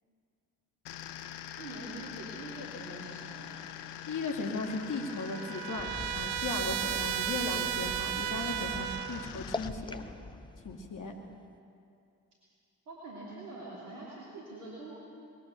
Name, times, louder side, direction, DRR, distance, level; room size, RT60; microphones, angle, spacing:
sound 1, 0.9-9.7, left 11 dB, 60° left, 1.0 m, -44 dB
voice 1, 1.5-3.7 12.9-15.0, right 2 dB, 75° right, -6 dB, 3.2 m, -44 dB
voice 2, 4.1-10.0 10.6-11.1, left 3 dB, 40° left, 2 dB, 2.8 m, -37 dB
Trumpet, 4.6-9.3, right 14 dB, 55° right, 0.7 m, -35 dB
sound 2, 5.7-11.6, left 3 dB, 10° left, 0.9 m, -43 dB
20.5 x 18.0 x 7.0 m, 2.5 s
figure-of-eight pair, 45°, 47 cm